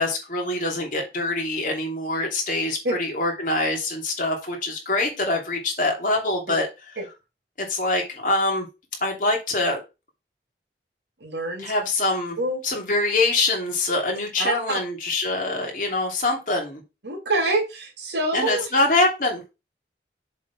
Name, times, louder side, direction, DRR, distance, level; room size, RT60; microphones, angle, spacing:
voice 1, 0.0-6.7 7.6-8.7 9.0-9.8 11.6-12.4 12.6-16.8 18.3-19.4, left 2 dB, 45° left, 2.9 m, -24 dB
voice 2, 11.2-11.7 12.4-12.6 14.4-14.8 17.0-18.7, right 2 dB, 85° right, 3.0 m, -26 dB
7.4 x 4.0 x 5.9 m
head